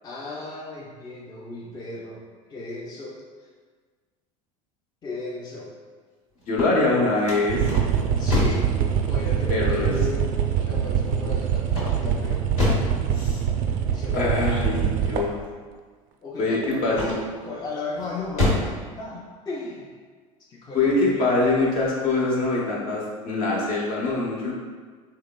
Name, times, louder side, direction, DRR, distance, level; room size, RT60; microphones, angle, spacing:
voice 1, 0.0-2.2 2.5-3.5 5.0-5.7 8.2-8.6 9.1-10.3 10.6-12.5 13.9-14.3 16.2-18.5 19.0-19.9 20.4-21.4, left 3 dB, 25° left, -4 dB, 0.5 m, -35 dB
sound 1, 6.4-8.7 11.7-13.0 16.9-17.4 18.0-18.8, left 2 dB, 85° left, 1.3 m, -26 dB
voice 2, 6.5-7.6 9.5-9.9 13.1-13.4 14.1-15.4 16.4-17.1 20.7-24.5, left 2 dB, 55° left, -4 dB, 1.0 m, -23 dB
sound 2, 7.5-15.4 16.6-16.7 17.0-17.1, right 8 dB, 50° right, 0.4 m, -24 dB
3.8 x 2.9 x 2.2 m, 1.5 s
hypercardioid pair, 85°, 17 cm